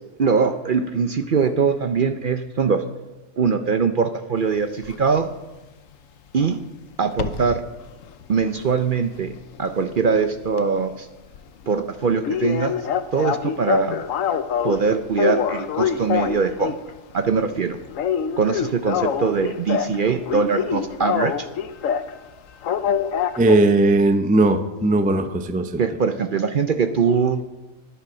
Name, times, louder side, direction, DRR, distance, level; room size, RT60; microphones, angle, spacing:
voice 1, 0.2-2.8 3.4-5.3 6.3-6.6 7.0-7.6 8.3-9.3 9.6-11.1 11.7-12.7 13.1-14.0 14.6-16.7 17.1-17.8 18.4-21.5 25.8-27.4, right 5 dB, 50° right, 9 dB, 0.6 m, -22 dB
sound 1, 4.8-5.0 7.1-7.6 8.0-10.2 10.4-10.6 11.0-11.1 11.3-11.4 11.7-11.8 12.2-14.8 15.1-16.9 17.3-17.6 17.9-20.0 20.3-22.1 22.6-23.6, left 8 dB, 80° left, 1.1 m, -25 dB
voice 2, 23.4-25.8, right 2 dB, 10° right, 9 dB, 0.4 m, -18 dB
11.0 x 10.0 x 6.2 m, 1.1 s
omnidirectional pair, 1.4 m